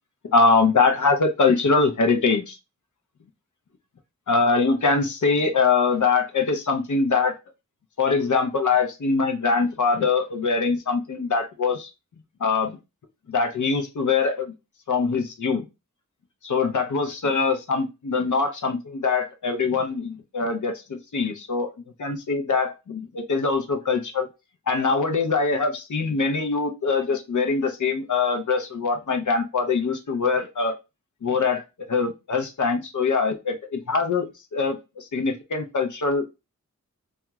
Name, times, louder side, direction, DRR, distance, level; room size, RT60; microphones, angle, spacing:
voice 1, 0.3-2.6 4.3-7.4 8.0-11.9 12.4-12.8 13.3-14.5 14.9-15.7 16.4-21.7 22.0-24.3 24.7-30.8 31.2-31.6 31.9-36.3, left 4 dB, 65° left, 6 dB, 0.6 m, -23 dB
2.3 x 2.1 x 2.9 m, 0.26 s
wide cardioid pair, 60°, 32 cm